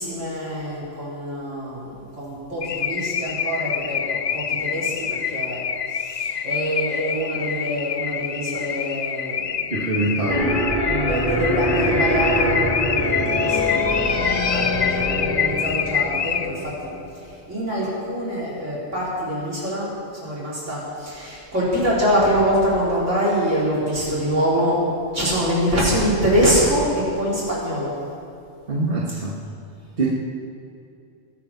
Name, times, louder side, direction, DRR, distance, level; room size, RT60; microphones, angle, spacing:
voice 1, 0.0-5.6 5.9-9.5 10.0-10.3 10.8-24.8 25.1-28.0, equal, 75° right, -7 dB, 4.7 m, -24 dB
Car / Alarm, 2.6-16.8, left 8 dB, 65° left, 0.4 m, -26 dB
voice 2, 9.7-10.6 28.7-29.4 30.0-30.1, right 2 dB, 45° right, -5 dB, 1.9 m, -24 dB
sound 1, 10.3-17.1, left 1 dB, 30° left, 1.8 m, -24 dB
20.0 x 8.6 x 5.9 m, 2.6 s
omnidirectional pair, 1.3 m